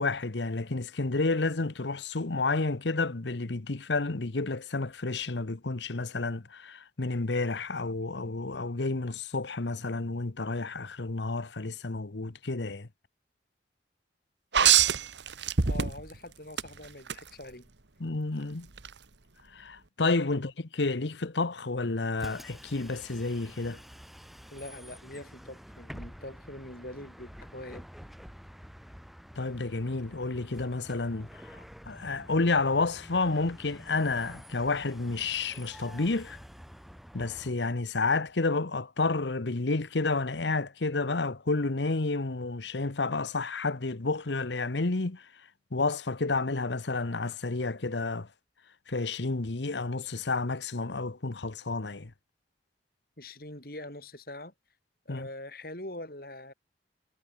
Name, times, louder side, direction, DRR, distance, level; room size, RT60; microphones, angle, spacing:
voice 1, 0.0-12.9 18.0-18.7 19.5-23.8 29.4-31.4 31.9-36.4 37.1-45.2 45.7-48.3 48.9-52.1 55.1-55.3, left 3 dB, 75° left, 1.1 m, -30 dB
sound 1, 14.5-16.2 16.6-17.2 18.8-18.9, right 8 dB, 80° right, 1.5 m, -23 dB
voice 2, 15.6-17.7 24.5-27.9 53.2-54.5 55.0-56.5, left 1 dB, 55° left, 6.6 m, -43 dB
Bus, 22.1-37.5, equal, ahead, 5.9 m, -48 dB
head